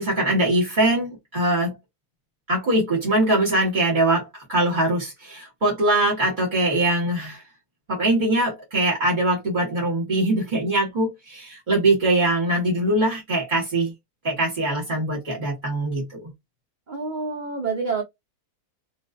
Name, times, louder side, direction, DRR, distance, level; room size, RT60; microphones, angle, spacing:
voice 1, 0.0-1.7 2.5-7.4 7.9-13.9 14.2-16.2, right 1 dB, 40° right, 1.0 m, -22 dB
voice 2, 16.9-18.0, right 4 dB, 80° right, 0.4 m, -27 dB
2.4 x 2.3 x 2.4 m
omnidirectional pair, 1.6 m